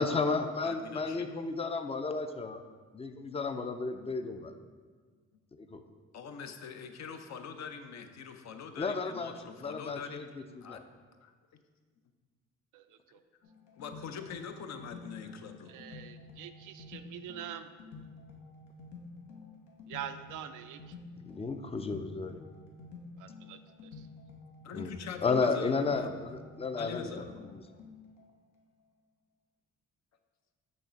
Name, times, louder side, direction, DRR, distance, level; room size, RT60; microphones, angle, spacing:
voice 1, 0.0-2.6 2.9-4.6 5.6-5.8 8.8-9.3 9.6-10.2 10.6-10.8 21.2-22.5 24.7-24.9 25.2-27.6, left 4 dB, 20° left, 8 dB, 0.4 m, -33 dB
voice 2, 0.6-1.3 6.1-10.3 10.6-10.8 11.2-11.3 13.8-15.7 24.6-26.1 26.8-27.3, left 6 dB, 65° left, 7 dB, 0.6 m, -43 dB
voice 3, 12.7-13.2 15.7-17.8 19.9-21.0 23.2-24.1, right 10 dB, 85° right, 9 dB, 0.5 m, -45 dB
sound 1, 13.4-28.3, left 4 dB, 85° left, 1.0 m, -50 dB
6.3 x 3.2 x 5.7 m, 1.5 s
cardioid pair, 90°, 30 cm